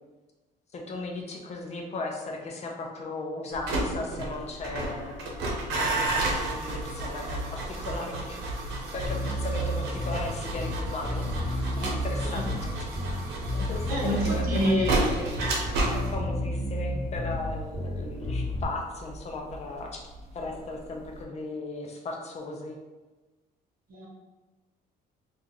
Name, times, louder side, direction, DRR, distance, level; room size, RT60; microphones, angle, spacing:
voice 1, 0.7-5.2 5.8-8.4 8.9-12.7 13.5-15.3 15.9-19.9 20.3-22.8, left 3 dB, 40° left, 1 dB, 0.6 m, -36 dB
sound 1, 3.5-20.5 20.8-21.2, right 2 dB, 85° right, 0.8 m, -32 dB
Bass guitar, 9.0-18.6, equal, 20° left, 1.3 m, -32 dB
voice 2, 13.9-15.0 23.9-24.1, equal, 55° right, -2 dB, 1.0 m, -27 dB
2.8 x 2.4 x 3.8 m, 1.2 s
cardioid pair, 110°, 17 cm